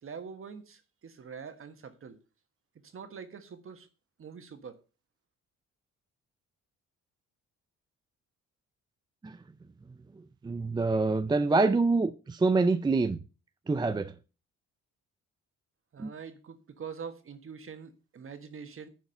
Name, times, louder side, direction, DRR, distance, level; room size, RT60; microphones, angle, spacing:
voice 1, 0.0-2.2 2.8-3.9 4.2-4.8 15.9-18.9, right 6 dB, 45° right, 1.5 m, -44 dB
voice 2, 10.4-13.2 13.7-14.1 16.0-16.1, right 3 dB, 15° right, 0.4 m, -26 dB
10.5 x 4.7 x 5.5 m
cardioid pair, 90°, 30 cm